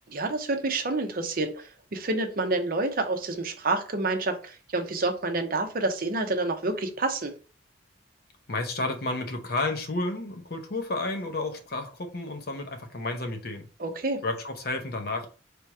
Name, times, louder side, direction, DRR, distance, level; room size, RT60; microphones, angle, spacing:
voice 1, 0.1-7.3 13.8-14.2, right 2 dB, 50° right, 0.7 m, -28 dB
voice 2, 8.5-13.7 14.2-15.3, left 2 dB, 55° left, 0.8 m, -31 dB
3.3 x 3.0 x 4.7 m
head